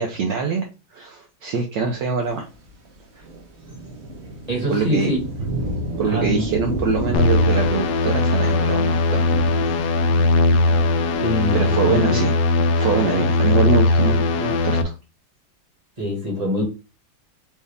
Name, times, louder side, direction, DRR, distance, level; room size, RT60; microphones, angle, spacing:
voice 1, 0.0-2.5 3.2-3.3 4.7-5.1 6.0-9.2 9.8-10.1 11.5-12.3 12.6-14.9, right 5 dB, 70° right, 1.2 m, -24 dB
sound 1, 2.6-3.0 3.2-11.7, right 1 dB, 45° right, 0.9 m, -31 dB
voice 2, 4.5-5.2 6.0-6.5 11.2-12.2 13.1-13.2 16.0-16.6, left 1 dB, 20° right, 1.3 m, -24 dB
sound 2, 7.1-14.8, left 2 dB, 75° left, 1.0 m, -19 dB
4.6 x 2.7 x 3.3 m
omnidirectional pair, 2.3 m